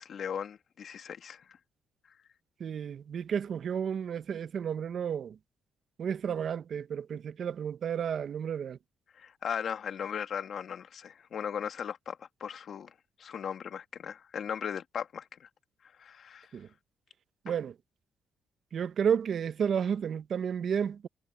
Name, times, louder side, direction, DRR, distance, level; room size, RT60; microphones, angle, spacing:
voice 1, 0.0-1.4 9.1-15.5 16.0-16.5 17.5-17.6, left 8 dB, 60° left, 2.3 m, -38 dB
voice 2, 2.6-5.4 6.0-8.8 16.5-16.7 17.4-17.7 18.7-21.1, right 7 dB, 55° right, 0.9 m, -32 dB
cardioid pair, 90°, 0 cm